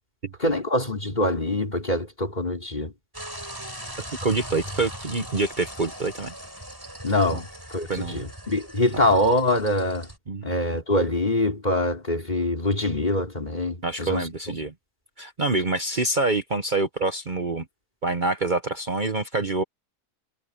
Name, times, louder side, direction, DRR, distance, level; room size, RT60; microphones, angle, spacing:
voice 1, 0.4-2.9 7.0-7.4 7.7-10.1 10.4-14.3, left 1 dB, 30° left, 4.4 m, -24 dB
sound 1, 3.1-10.2, right 1 dB, 15° right, 5.4 m, -39 dB
voice 2, 4.2-6.3 7.3-7.4 7.9-8.2 10.3-10.4 13.8-14.7 15.2-17.6 18.0-19.6, right 3 dB, 35° right, 1.2 m, -26 dB
omnidirectional pair, 1.4 m